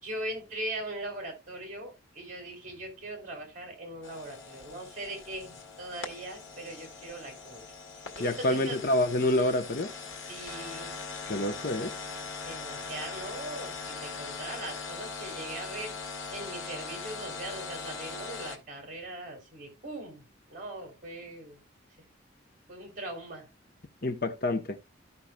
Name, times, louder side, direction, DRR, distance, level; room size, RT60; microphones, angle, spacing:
voice 1, 0.0-7.6 8.2-8.8 10.3-11.0 12.4-15.9 16.3-20.2 20.5-21.6 22.7-23.5, right 1 dB, 40° right, 3.4 m, -40 dB
sound 1, 4.0-18.6, left 4 dB, 75° left, 1.6 m, -41 dB
voice 2, 8.2-9.9 11.3-11.9 24.0-24.8, left 1 dB, 50° left, 1.0 m, -27 dB
14.5 x 5.7 x 2.3 m
head